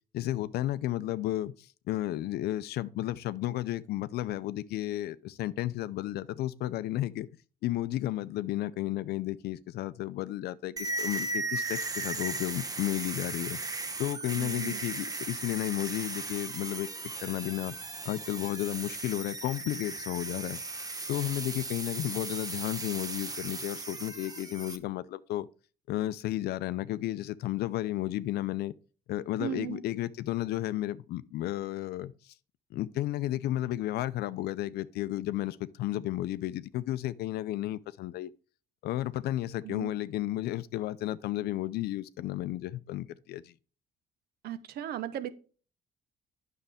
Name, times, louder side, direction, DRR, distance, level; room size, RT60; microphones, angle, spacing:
voice 1, 0.1-7.3 7.6-13.6 14.0-16.9 17.2-17.8 18.0-20.6 21.1-25.5 25.9-28.7 29.1-32.3 32.7-38.3 38.8-43.5, left 14 dB, 70° left, 0.5 m, -33 dB
sound 1, 10.8-24.8, right 3 dB, 20° right, 1.0 m, -37 dB
voice 2, 14.4-14.8 29.4-29.8 39.6-39.9 44.4-45.3, right 11 dB, 70° right, 1.0 m, -36 dB
9.0 x 6.6 x 3.5 m
cardioid pair, 110°, 17 cm